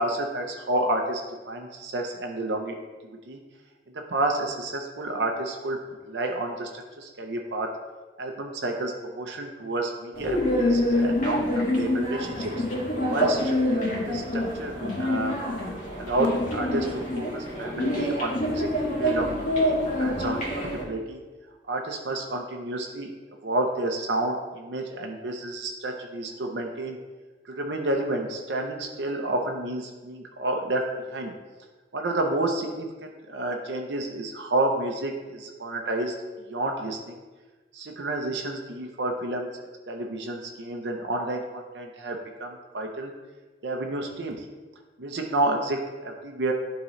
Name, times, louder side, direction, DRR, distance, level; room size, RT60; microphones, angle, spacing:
voice 1, 0.0-2.8 3.3-3.4 3.9-5.8 6.0-7.7 8.2-12.5 13.1-15.4 16.0-21.2 21.7-23.1 23.4-27.0 27.5-30.8 31.1-31.3 31.9-36.1 36.5-37.2 37.7-39.5 39.9-43.1 43.6-44.4 45.0-46.5, right 2 dB, 75° right, 2 dB, 0.7 m, -30 dB
sound 1, 10.2-20.8, left 1 dB, 50° left, 1.5 m, -26 dB
11.0 x 3.8 x 3.1 m, 1.3 s
head